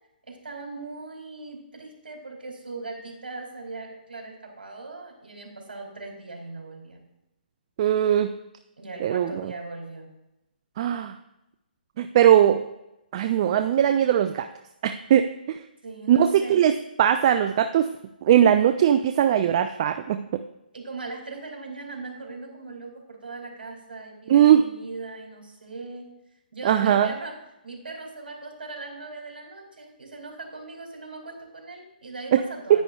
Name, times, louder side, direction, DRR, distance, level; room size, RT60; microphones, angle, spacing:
voice 1, 0.3-7.0 8.8-10.1 15.8-16.6 20.7-26.1 26.5-27.4 27.6-32.8, right 3 dB, 75° right, 1 dB, 2.5 m, -39 dB
voice 2, 7.8-8.3 9.0-9.5 10.8-11.1 12.0-12.6 13.1-14.5 14.8-15.6 16.1-16.7 17.0-17.9 18.2-20.4 24.3-24.6 26.6-27.1 32.3-32.4 32.7-32.8, right 10 dB, 40° right, 8 dB, 0.3 m, -20 dB
10.5 x 9.2 x 2.3 m, 0.91 s
figure-of-eight pair, 140°, 5 cm